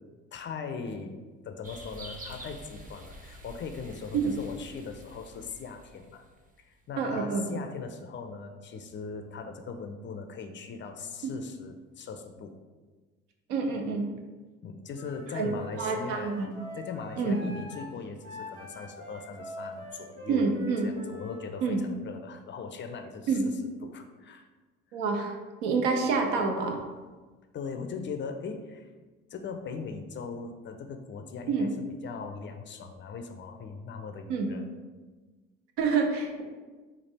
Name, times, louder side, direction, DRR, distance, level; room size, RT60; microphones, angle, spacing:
voice 1, 0.3-1.2 1.4-6.2 6.6-12.6 14.6-16.3 16.8-20.5 20.8-23.5 23.8-24.5 24.9-25.0 27.5-28.9 29.3-34.6, left 5 dB, 35° left, 6 dB, 0.4 m, -40 dB
sound 1, 1.6-6.6, right 1 dB, 25° right, 0.7 m, -47 dB
voice 2, 7.0-7.5 11.2-11.3 13.5-14.0 15.3-15.5 15.8-16.5 17.2-17.4 20.3-20.9 21.6-21.8 23.3-23.4 24.9-26.8 31.5-31.7 34.3-34.5 35.8-36.4, right 4 dB, 75° right, 3 dB, 0.7 m, -27 dB
Wind instrument woodwind instrument, 14.9-21.4, equal, 55° right, 1.2 m, -44 dB
3.3 x 2.4 x 4.0 m, 1.3 s
hypercardioid pair, 60°, 36 cm